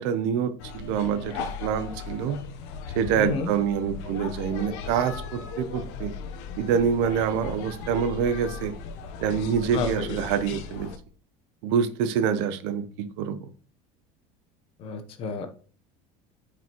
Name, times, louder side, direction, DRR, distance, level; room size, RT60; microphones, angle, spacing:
voice 1, 0.0-2.4 2.9-6.1 6.6-8.7 9.2-10.9 11.6-13.4, right 7 dB, 70° right, 0.8 m, -26 dB
sound 1, 0.6-11.0, left 5 dB, 70° left, 0.9 m, -37 dB
voice 2, 3.2-3.5 9.7-10.2 14.8-15.5, left 4 dB, 35° left, 1.0 m, -31 dB
9.1 x 5.0 x 3.0 m
cardioid pair, 175°, 15 cm